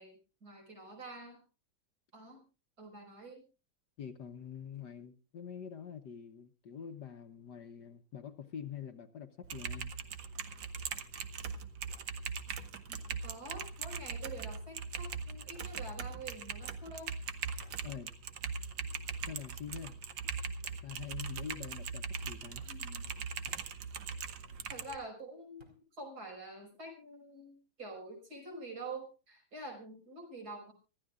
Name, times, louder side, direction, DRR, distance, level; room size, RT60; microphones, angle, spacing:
voice 1, 0.0-1.4 2.1-2.4 2.8-3.5 12.9-17.1 22.7-23.1 24.7-30.7, right 2 dB, 50° right, 5.9 m, -47 dB
voice 2, 4.0-9.9 17.8-18.1 19.3-20.0 20.8-22.6, left 8 dB, 60° left, 1.4 m, -45 dB
sound 1, 8.4-8.8 9.2-9.8 10.8-10.9 11.9-12.1 13.2-13.4 14.5-14.7 15.5-15.7 16.6-16.8 17.6-17.8 18.5-19.0 19.7-19.9 20.6-20.8 21.7-21.9 22.5-22.8 23.5-23.7 24.7-24.9 25.6-25.8, right 2 dB, 25° right, 2.8 m, -60 dB
Typing, 9.4-25.0, right 6 dB, 65° right, 1.7 m, -40 dB
25.0 x 14.0 x 2.4 m
omnidirectional pair, 2.2 m